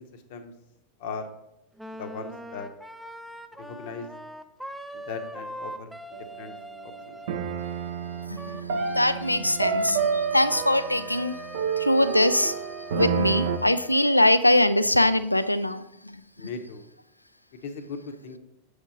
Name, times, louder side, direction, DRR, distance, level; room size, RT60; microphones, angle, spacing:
voice 1, 0.1-0.5 1.0-1.2 2.0-2.7 3.7-4.1 4.9-6.5 6.8-7.2 16.4-16.9 17.6-18.4, left 4 dB, 50° left, 8 dB, 0.8 m, -38 dB
Wind instrument woodwind instrument, 1.8-14.2, equal, 5° right, 0.4 m, -42 dB
sound 1, 6.1-6.5 7.3-13.6, right 6 dB, 60° right, 0.6 m, -29 dB
voice 2, 8.3-11.5 11.7-12.6 13.0-16.2, left 1 dB, 85° left, 13 dB, 0.3 m, -23 dB
7.1 x 5.0 x 4.1 m, 0.85 s
figure-of-eight pair, 90°, 0 cm